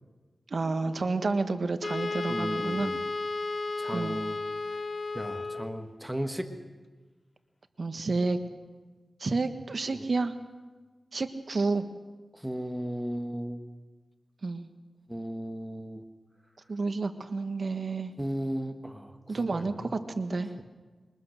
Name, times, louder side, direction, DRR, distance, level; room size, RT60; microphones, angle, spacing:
voice 1, 0.5-2.9 3.9-4.2 7.8-8.4 9.2-10.3 11.1-11.8 14.4-14.7 16.7-18.1 19.3-20.5, right 3 dB, 60° right, 8 dB, 1.4 m, -30 dB
Wind instrument woodwind instrument, 1.8-5.8, left 3 dB, 40° left, 0.9 m, -33 dB
voice 2, 2.3-3.0 3.8-4.4 4.7-4.8 5.1-6.5 9.9-10.1 12.3-13.6 15.1-16.0 18.2-19.9, equal, 5° right, 6 dB, 1.4 m, -35 dB
23.0 x 20.0 x 6.5 m, 1.4 s
wide cardioid pair, 90°, 0 cm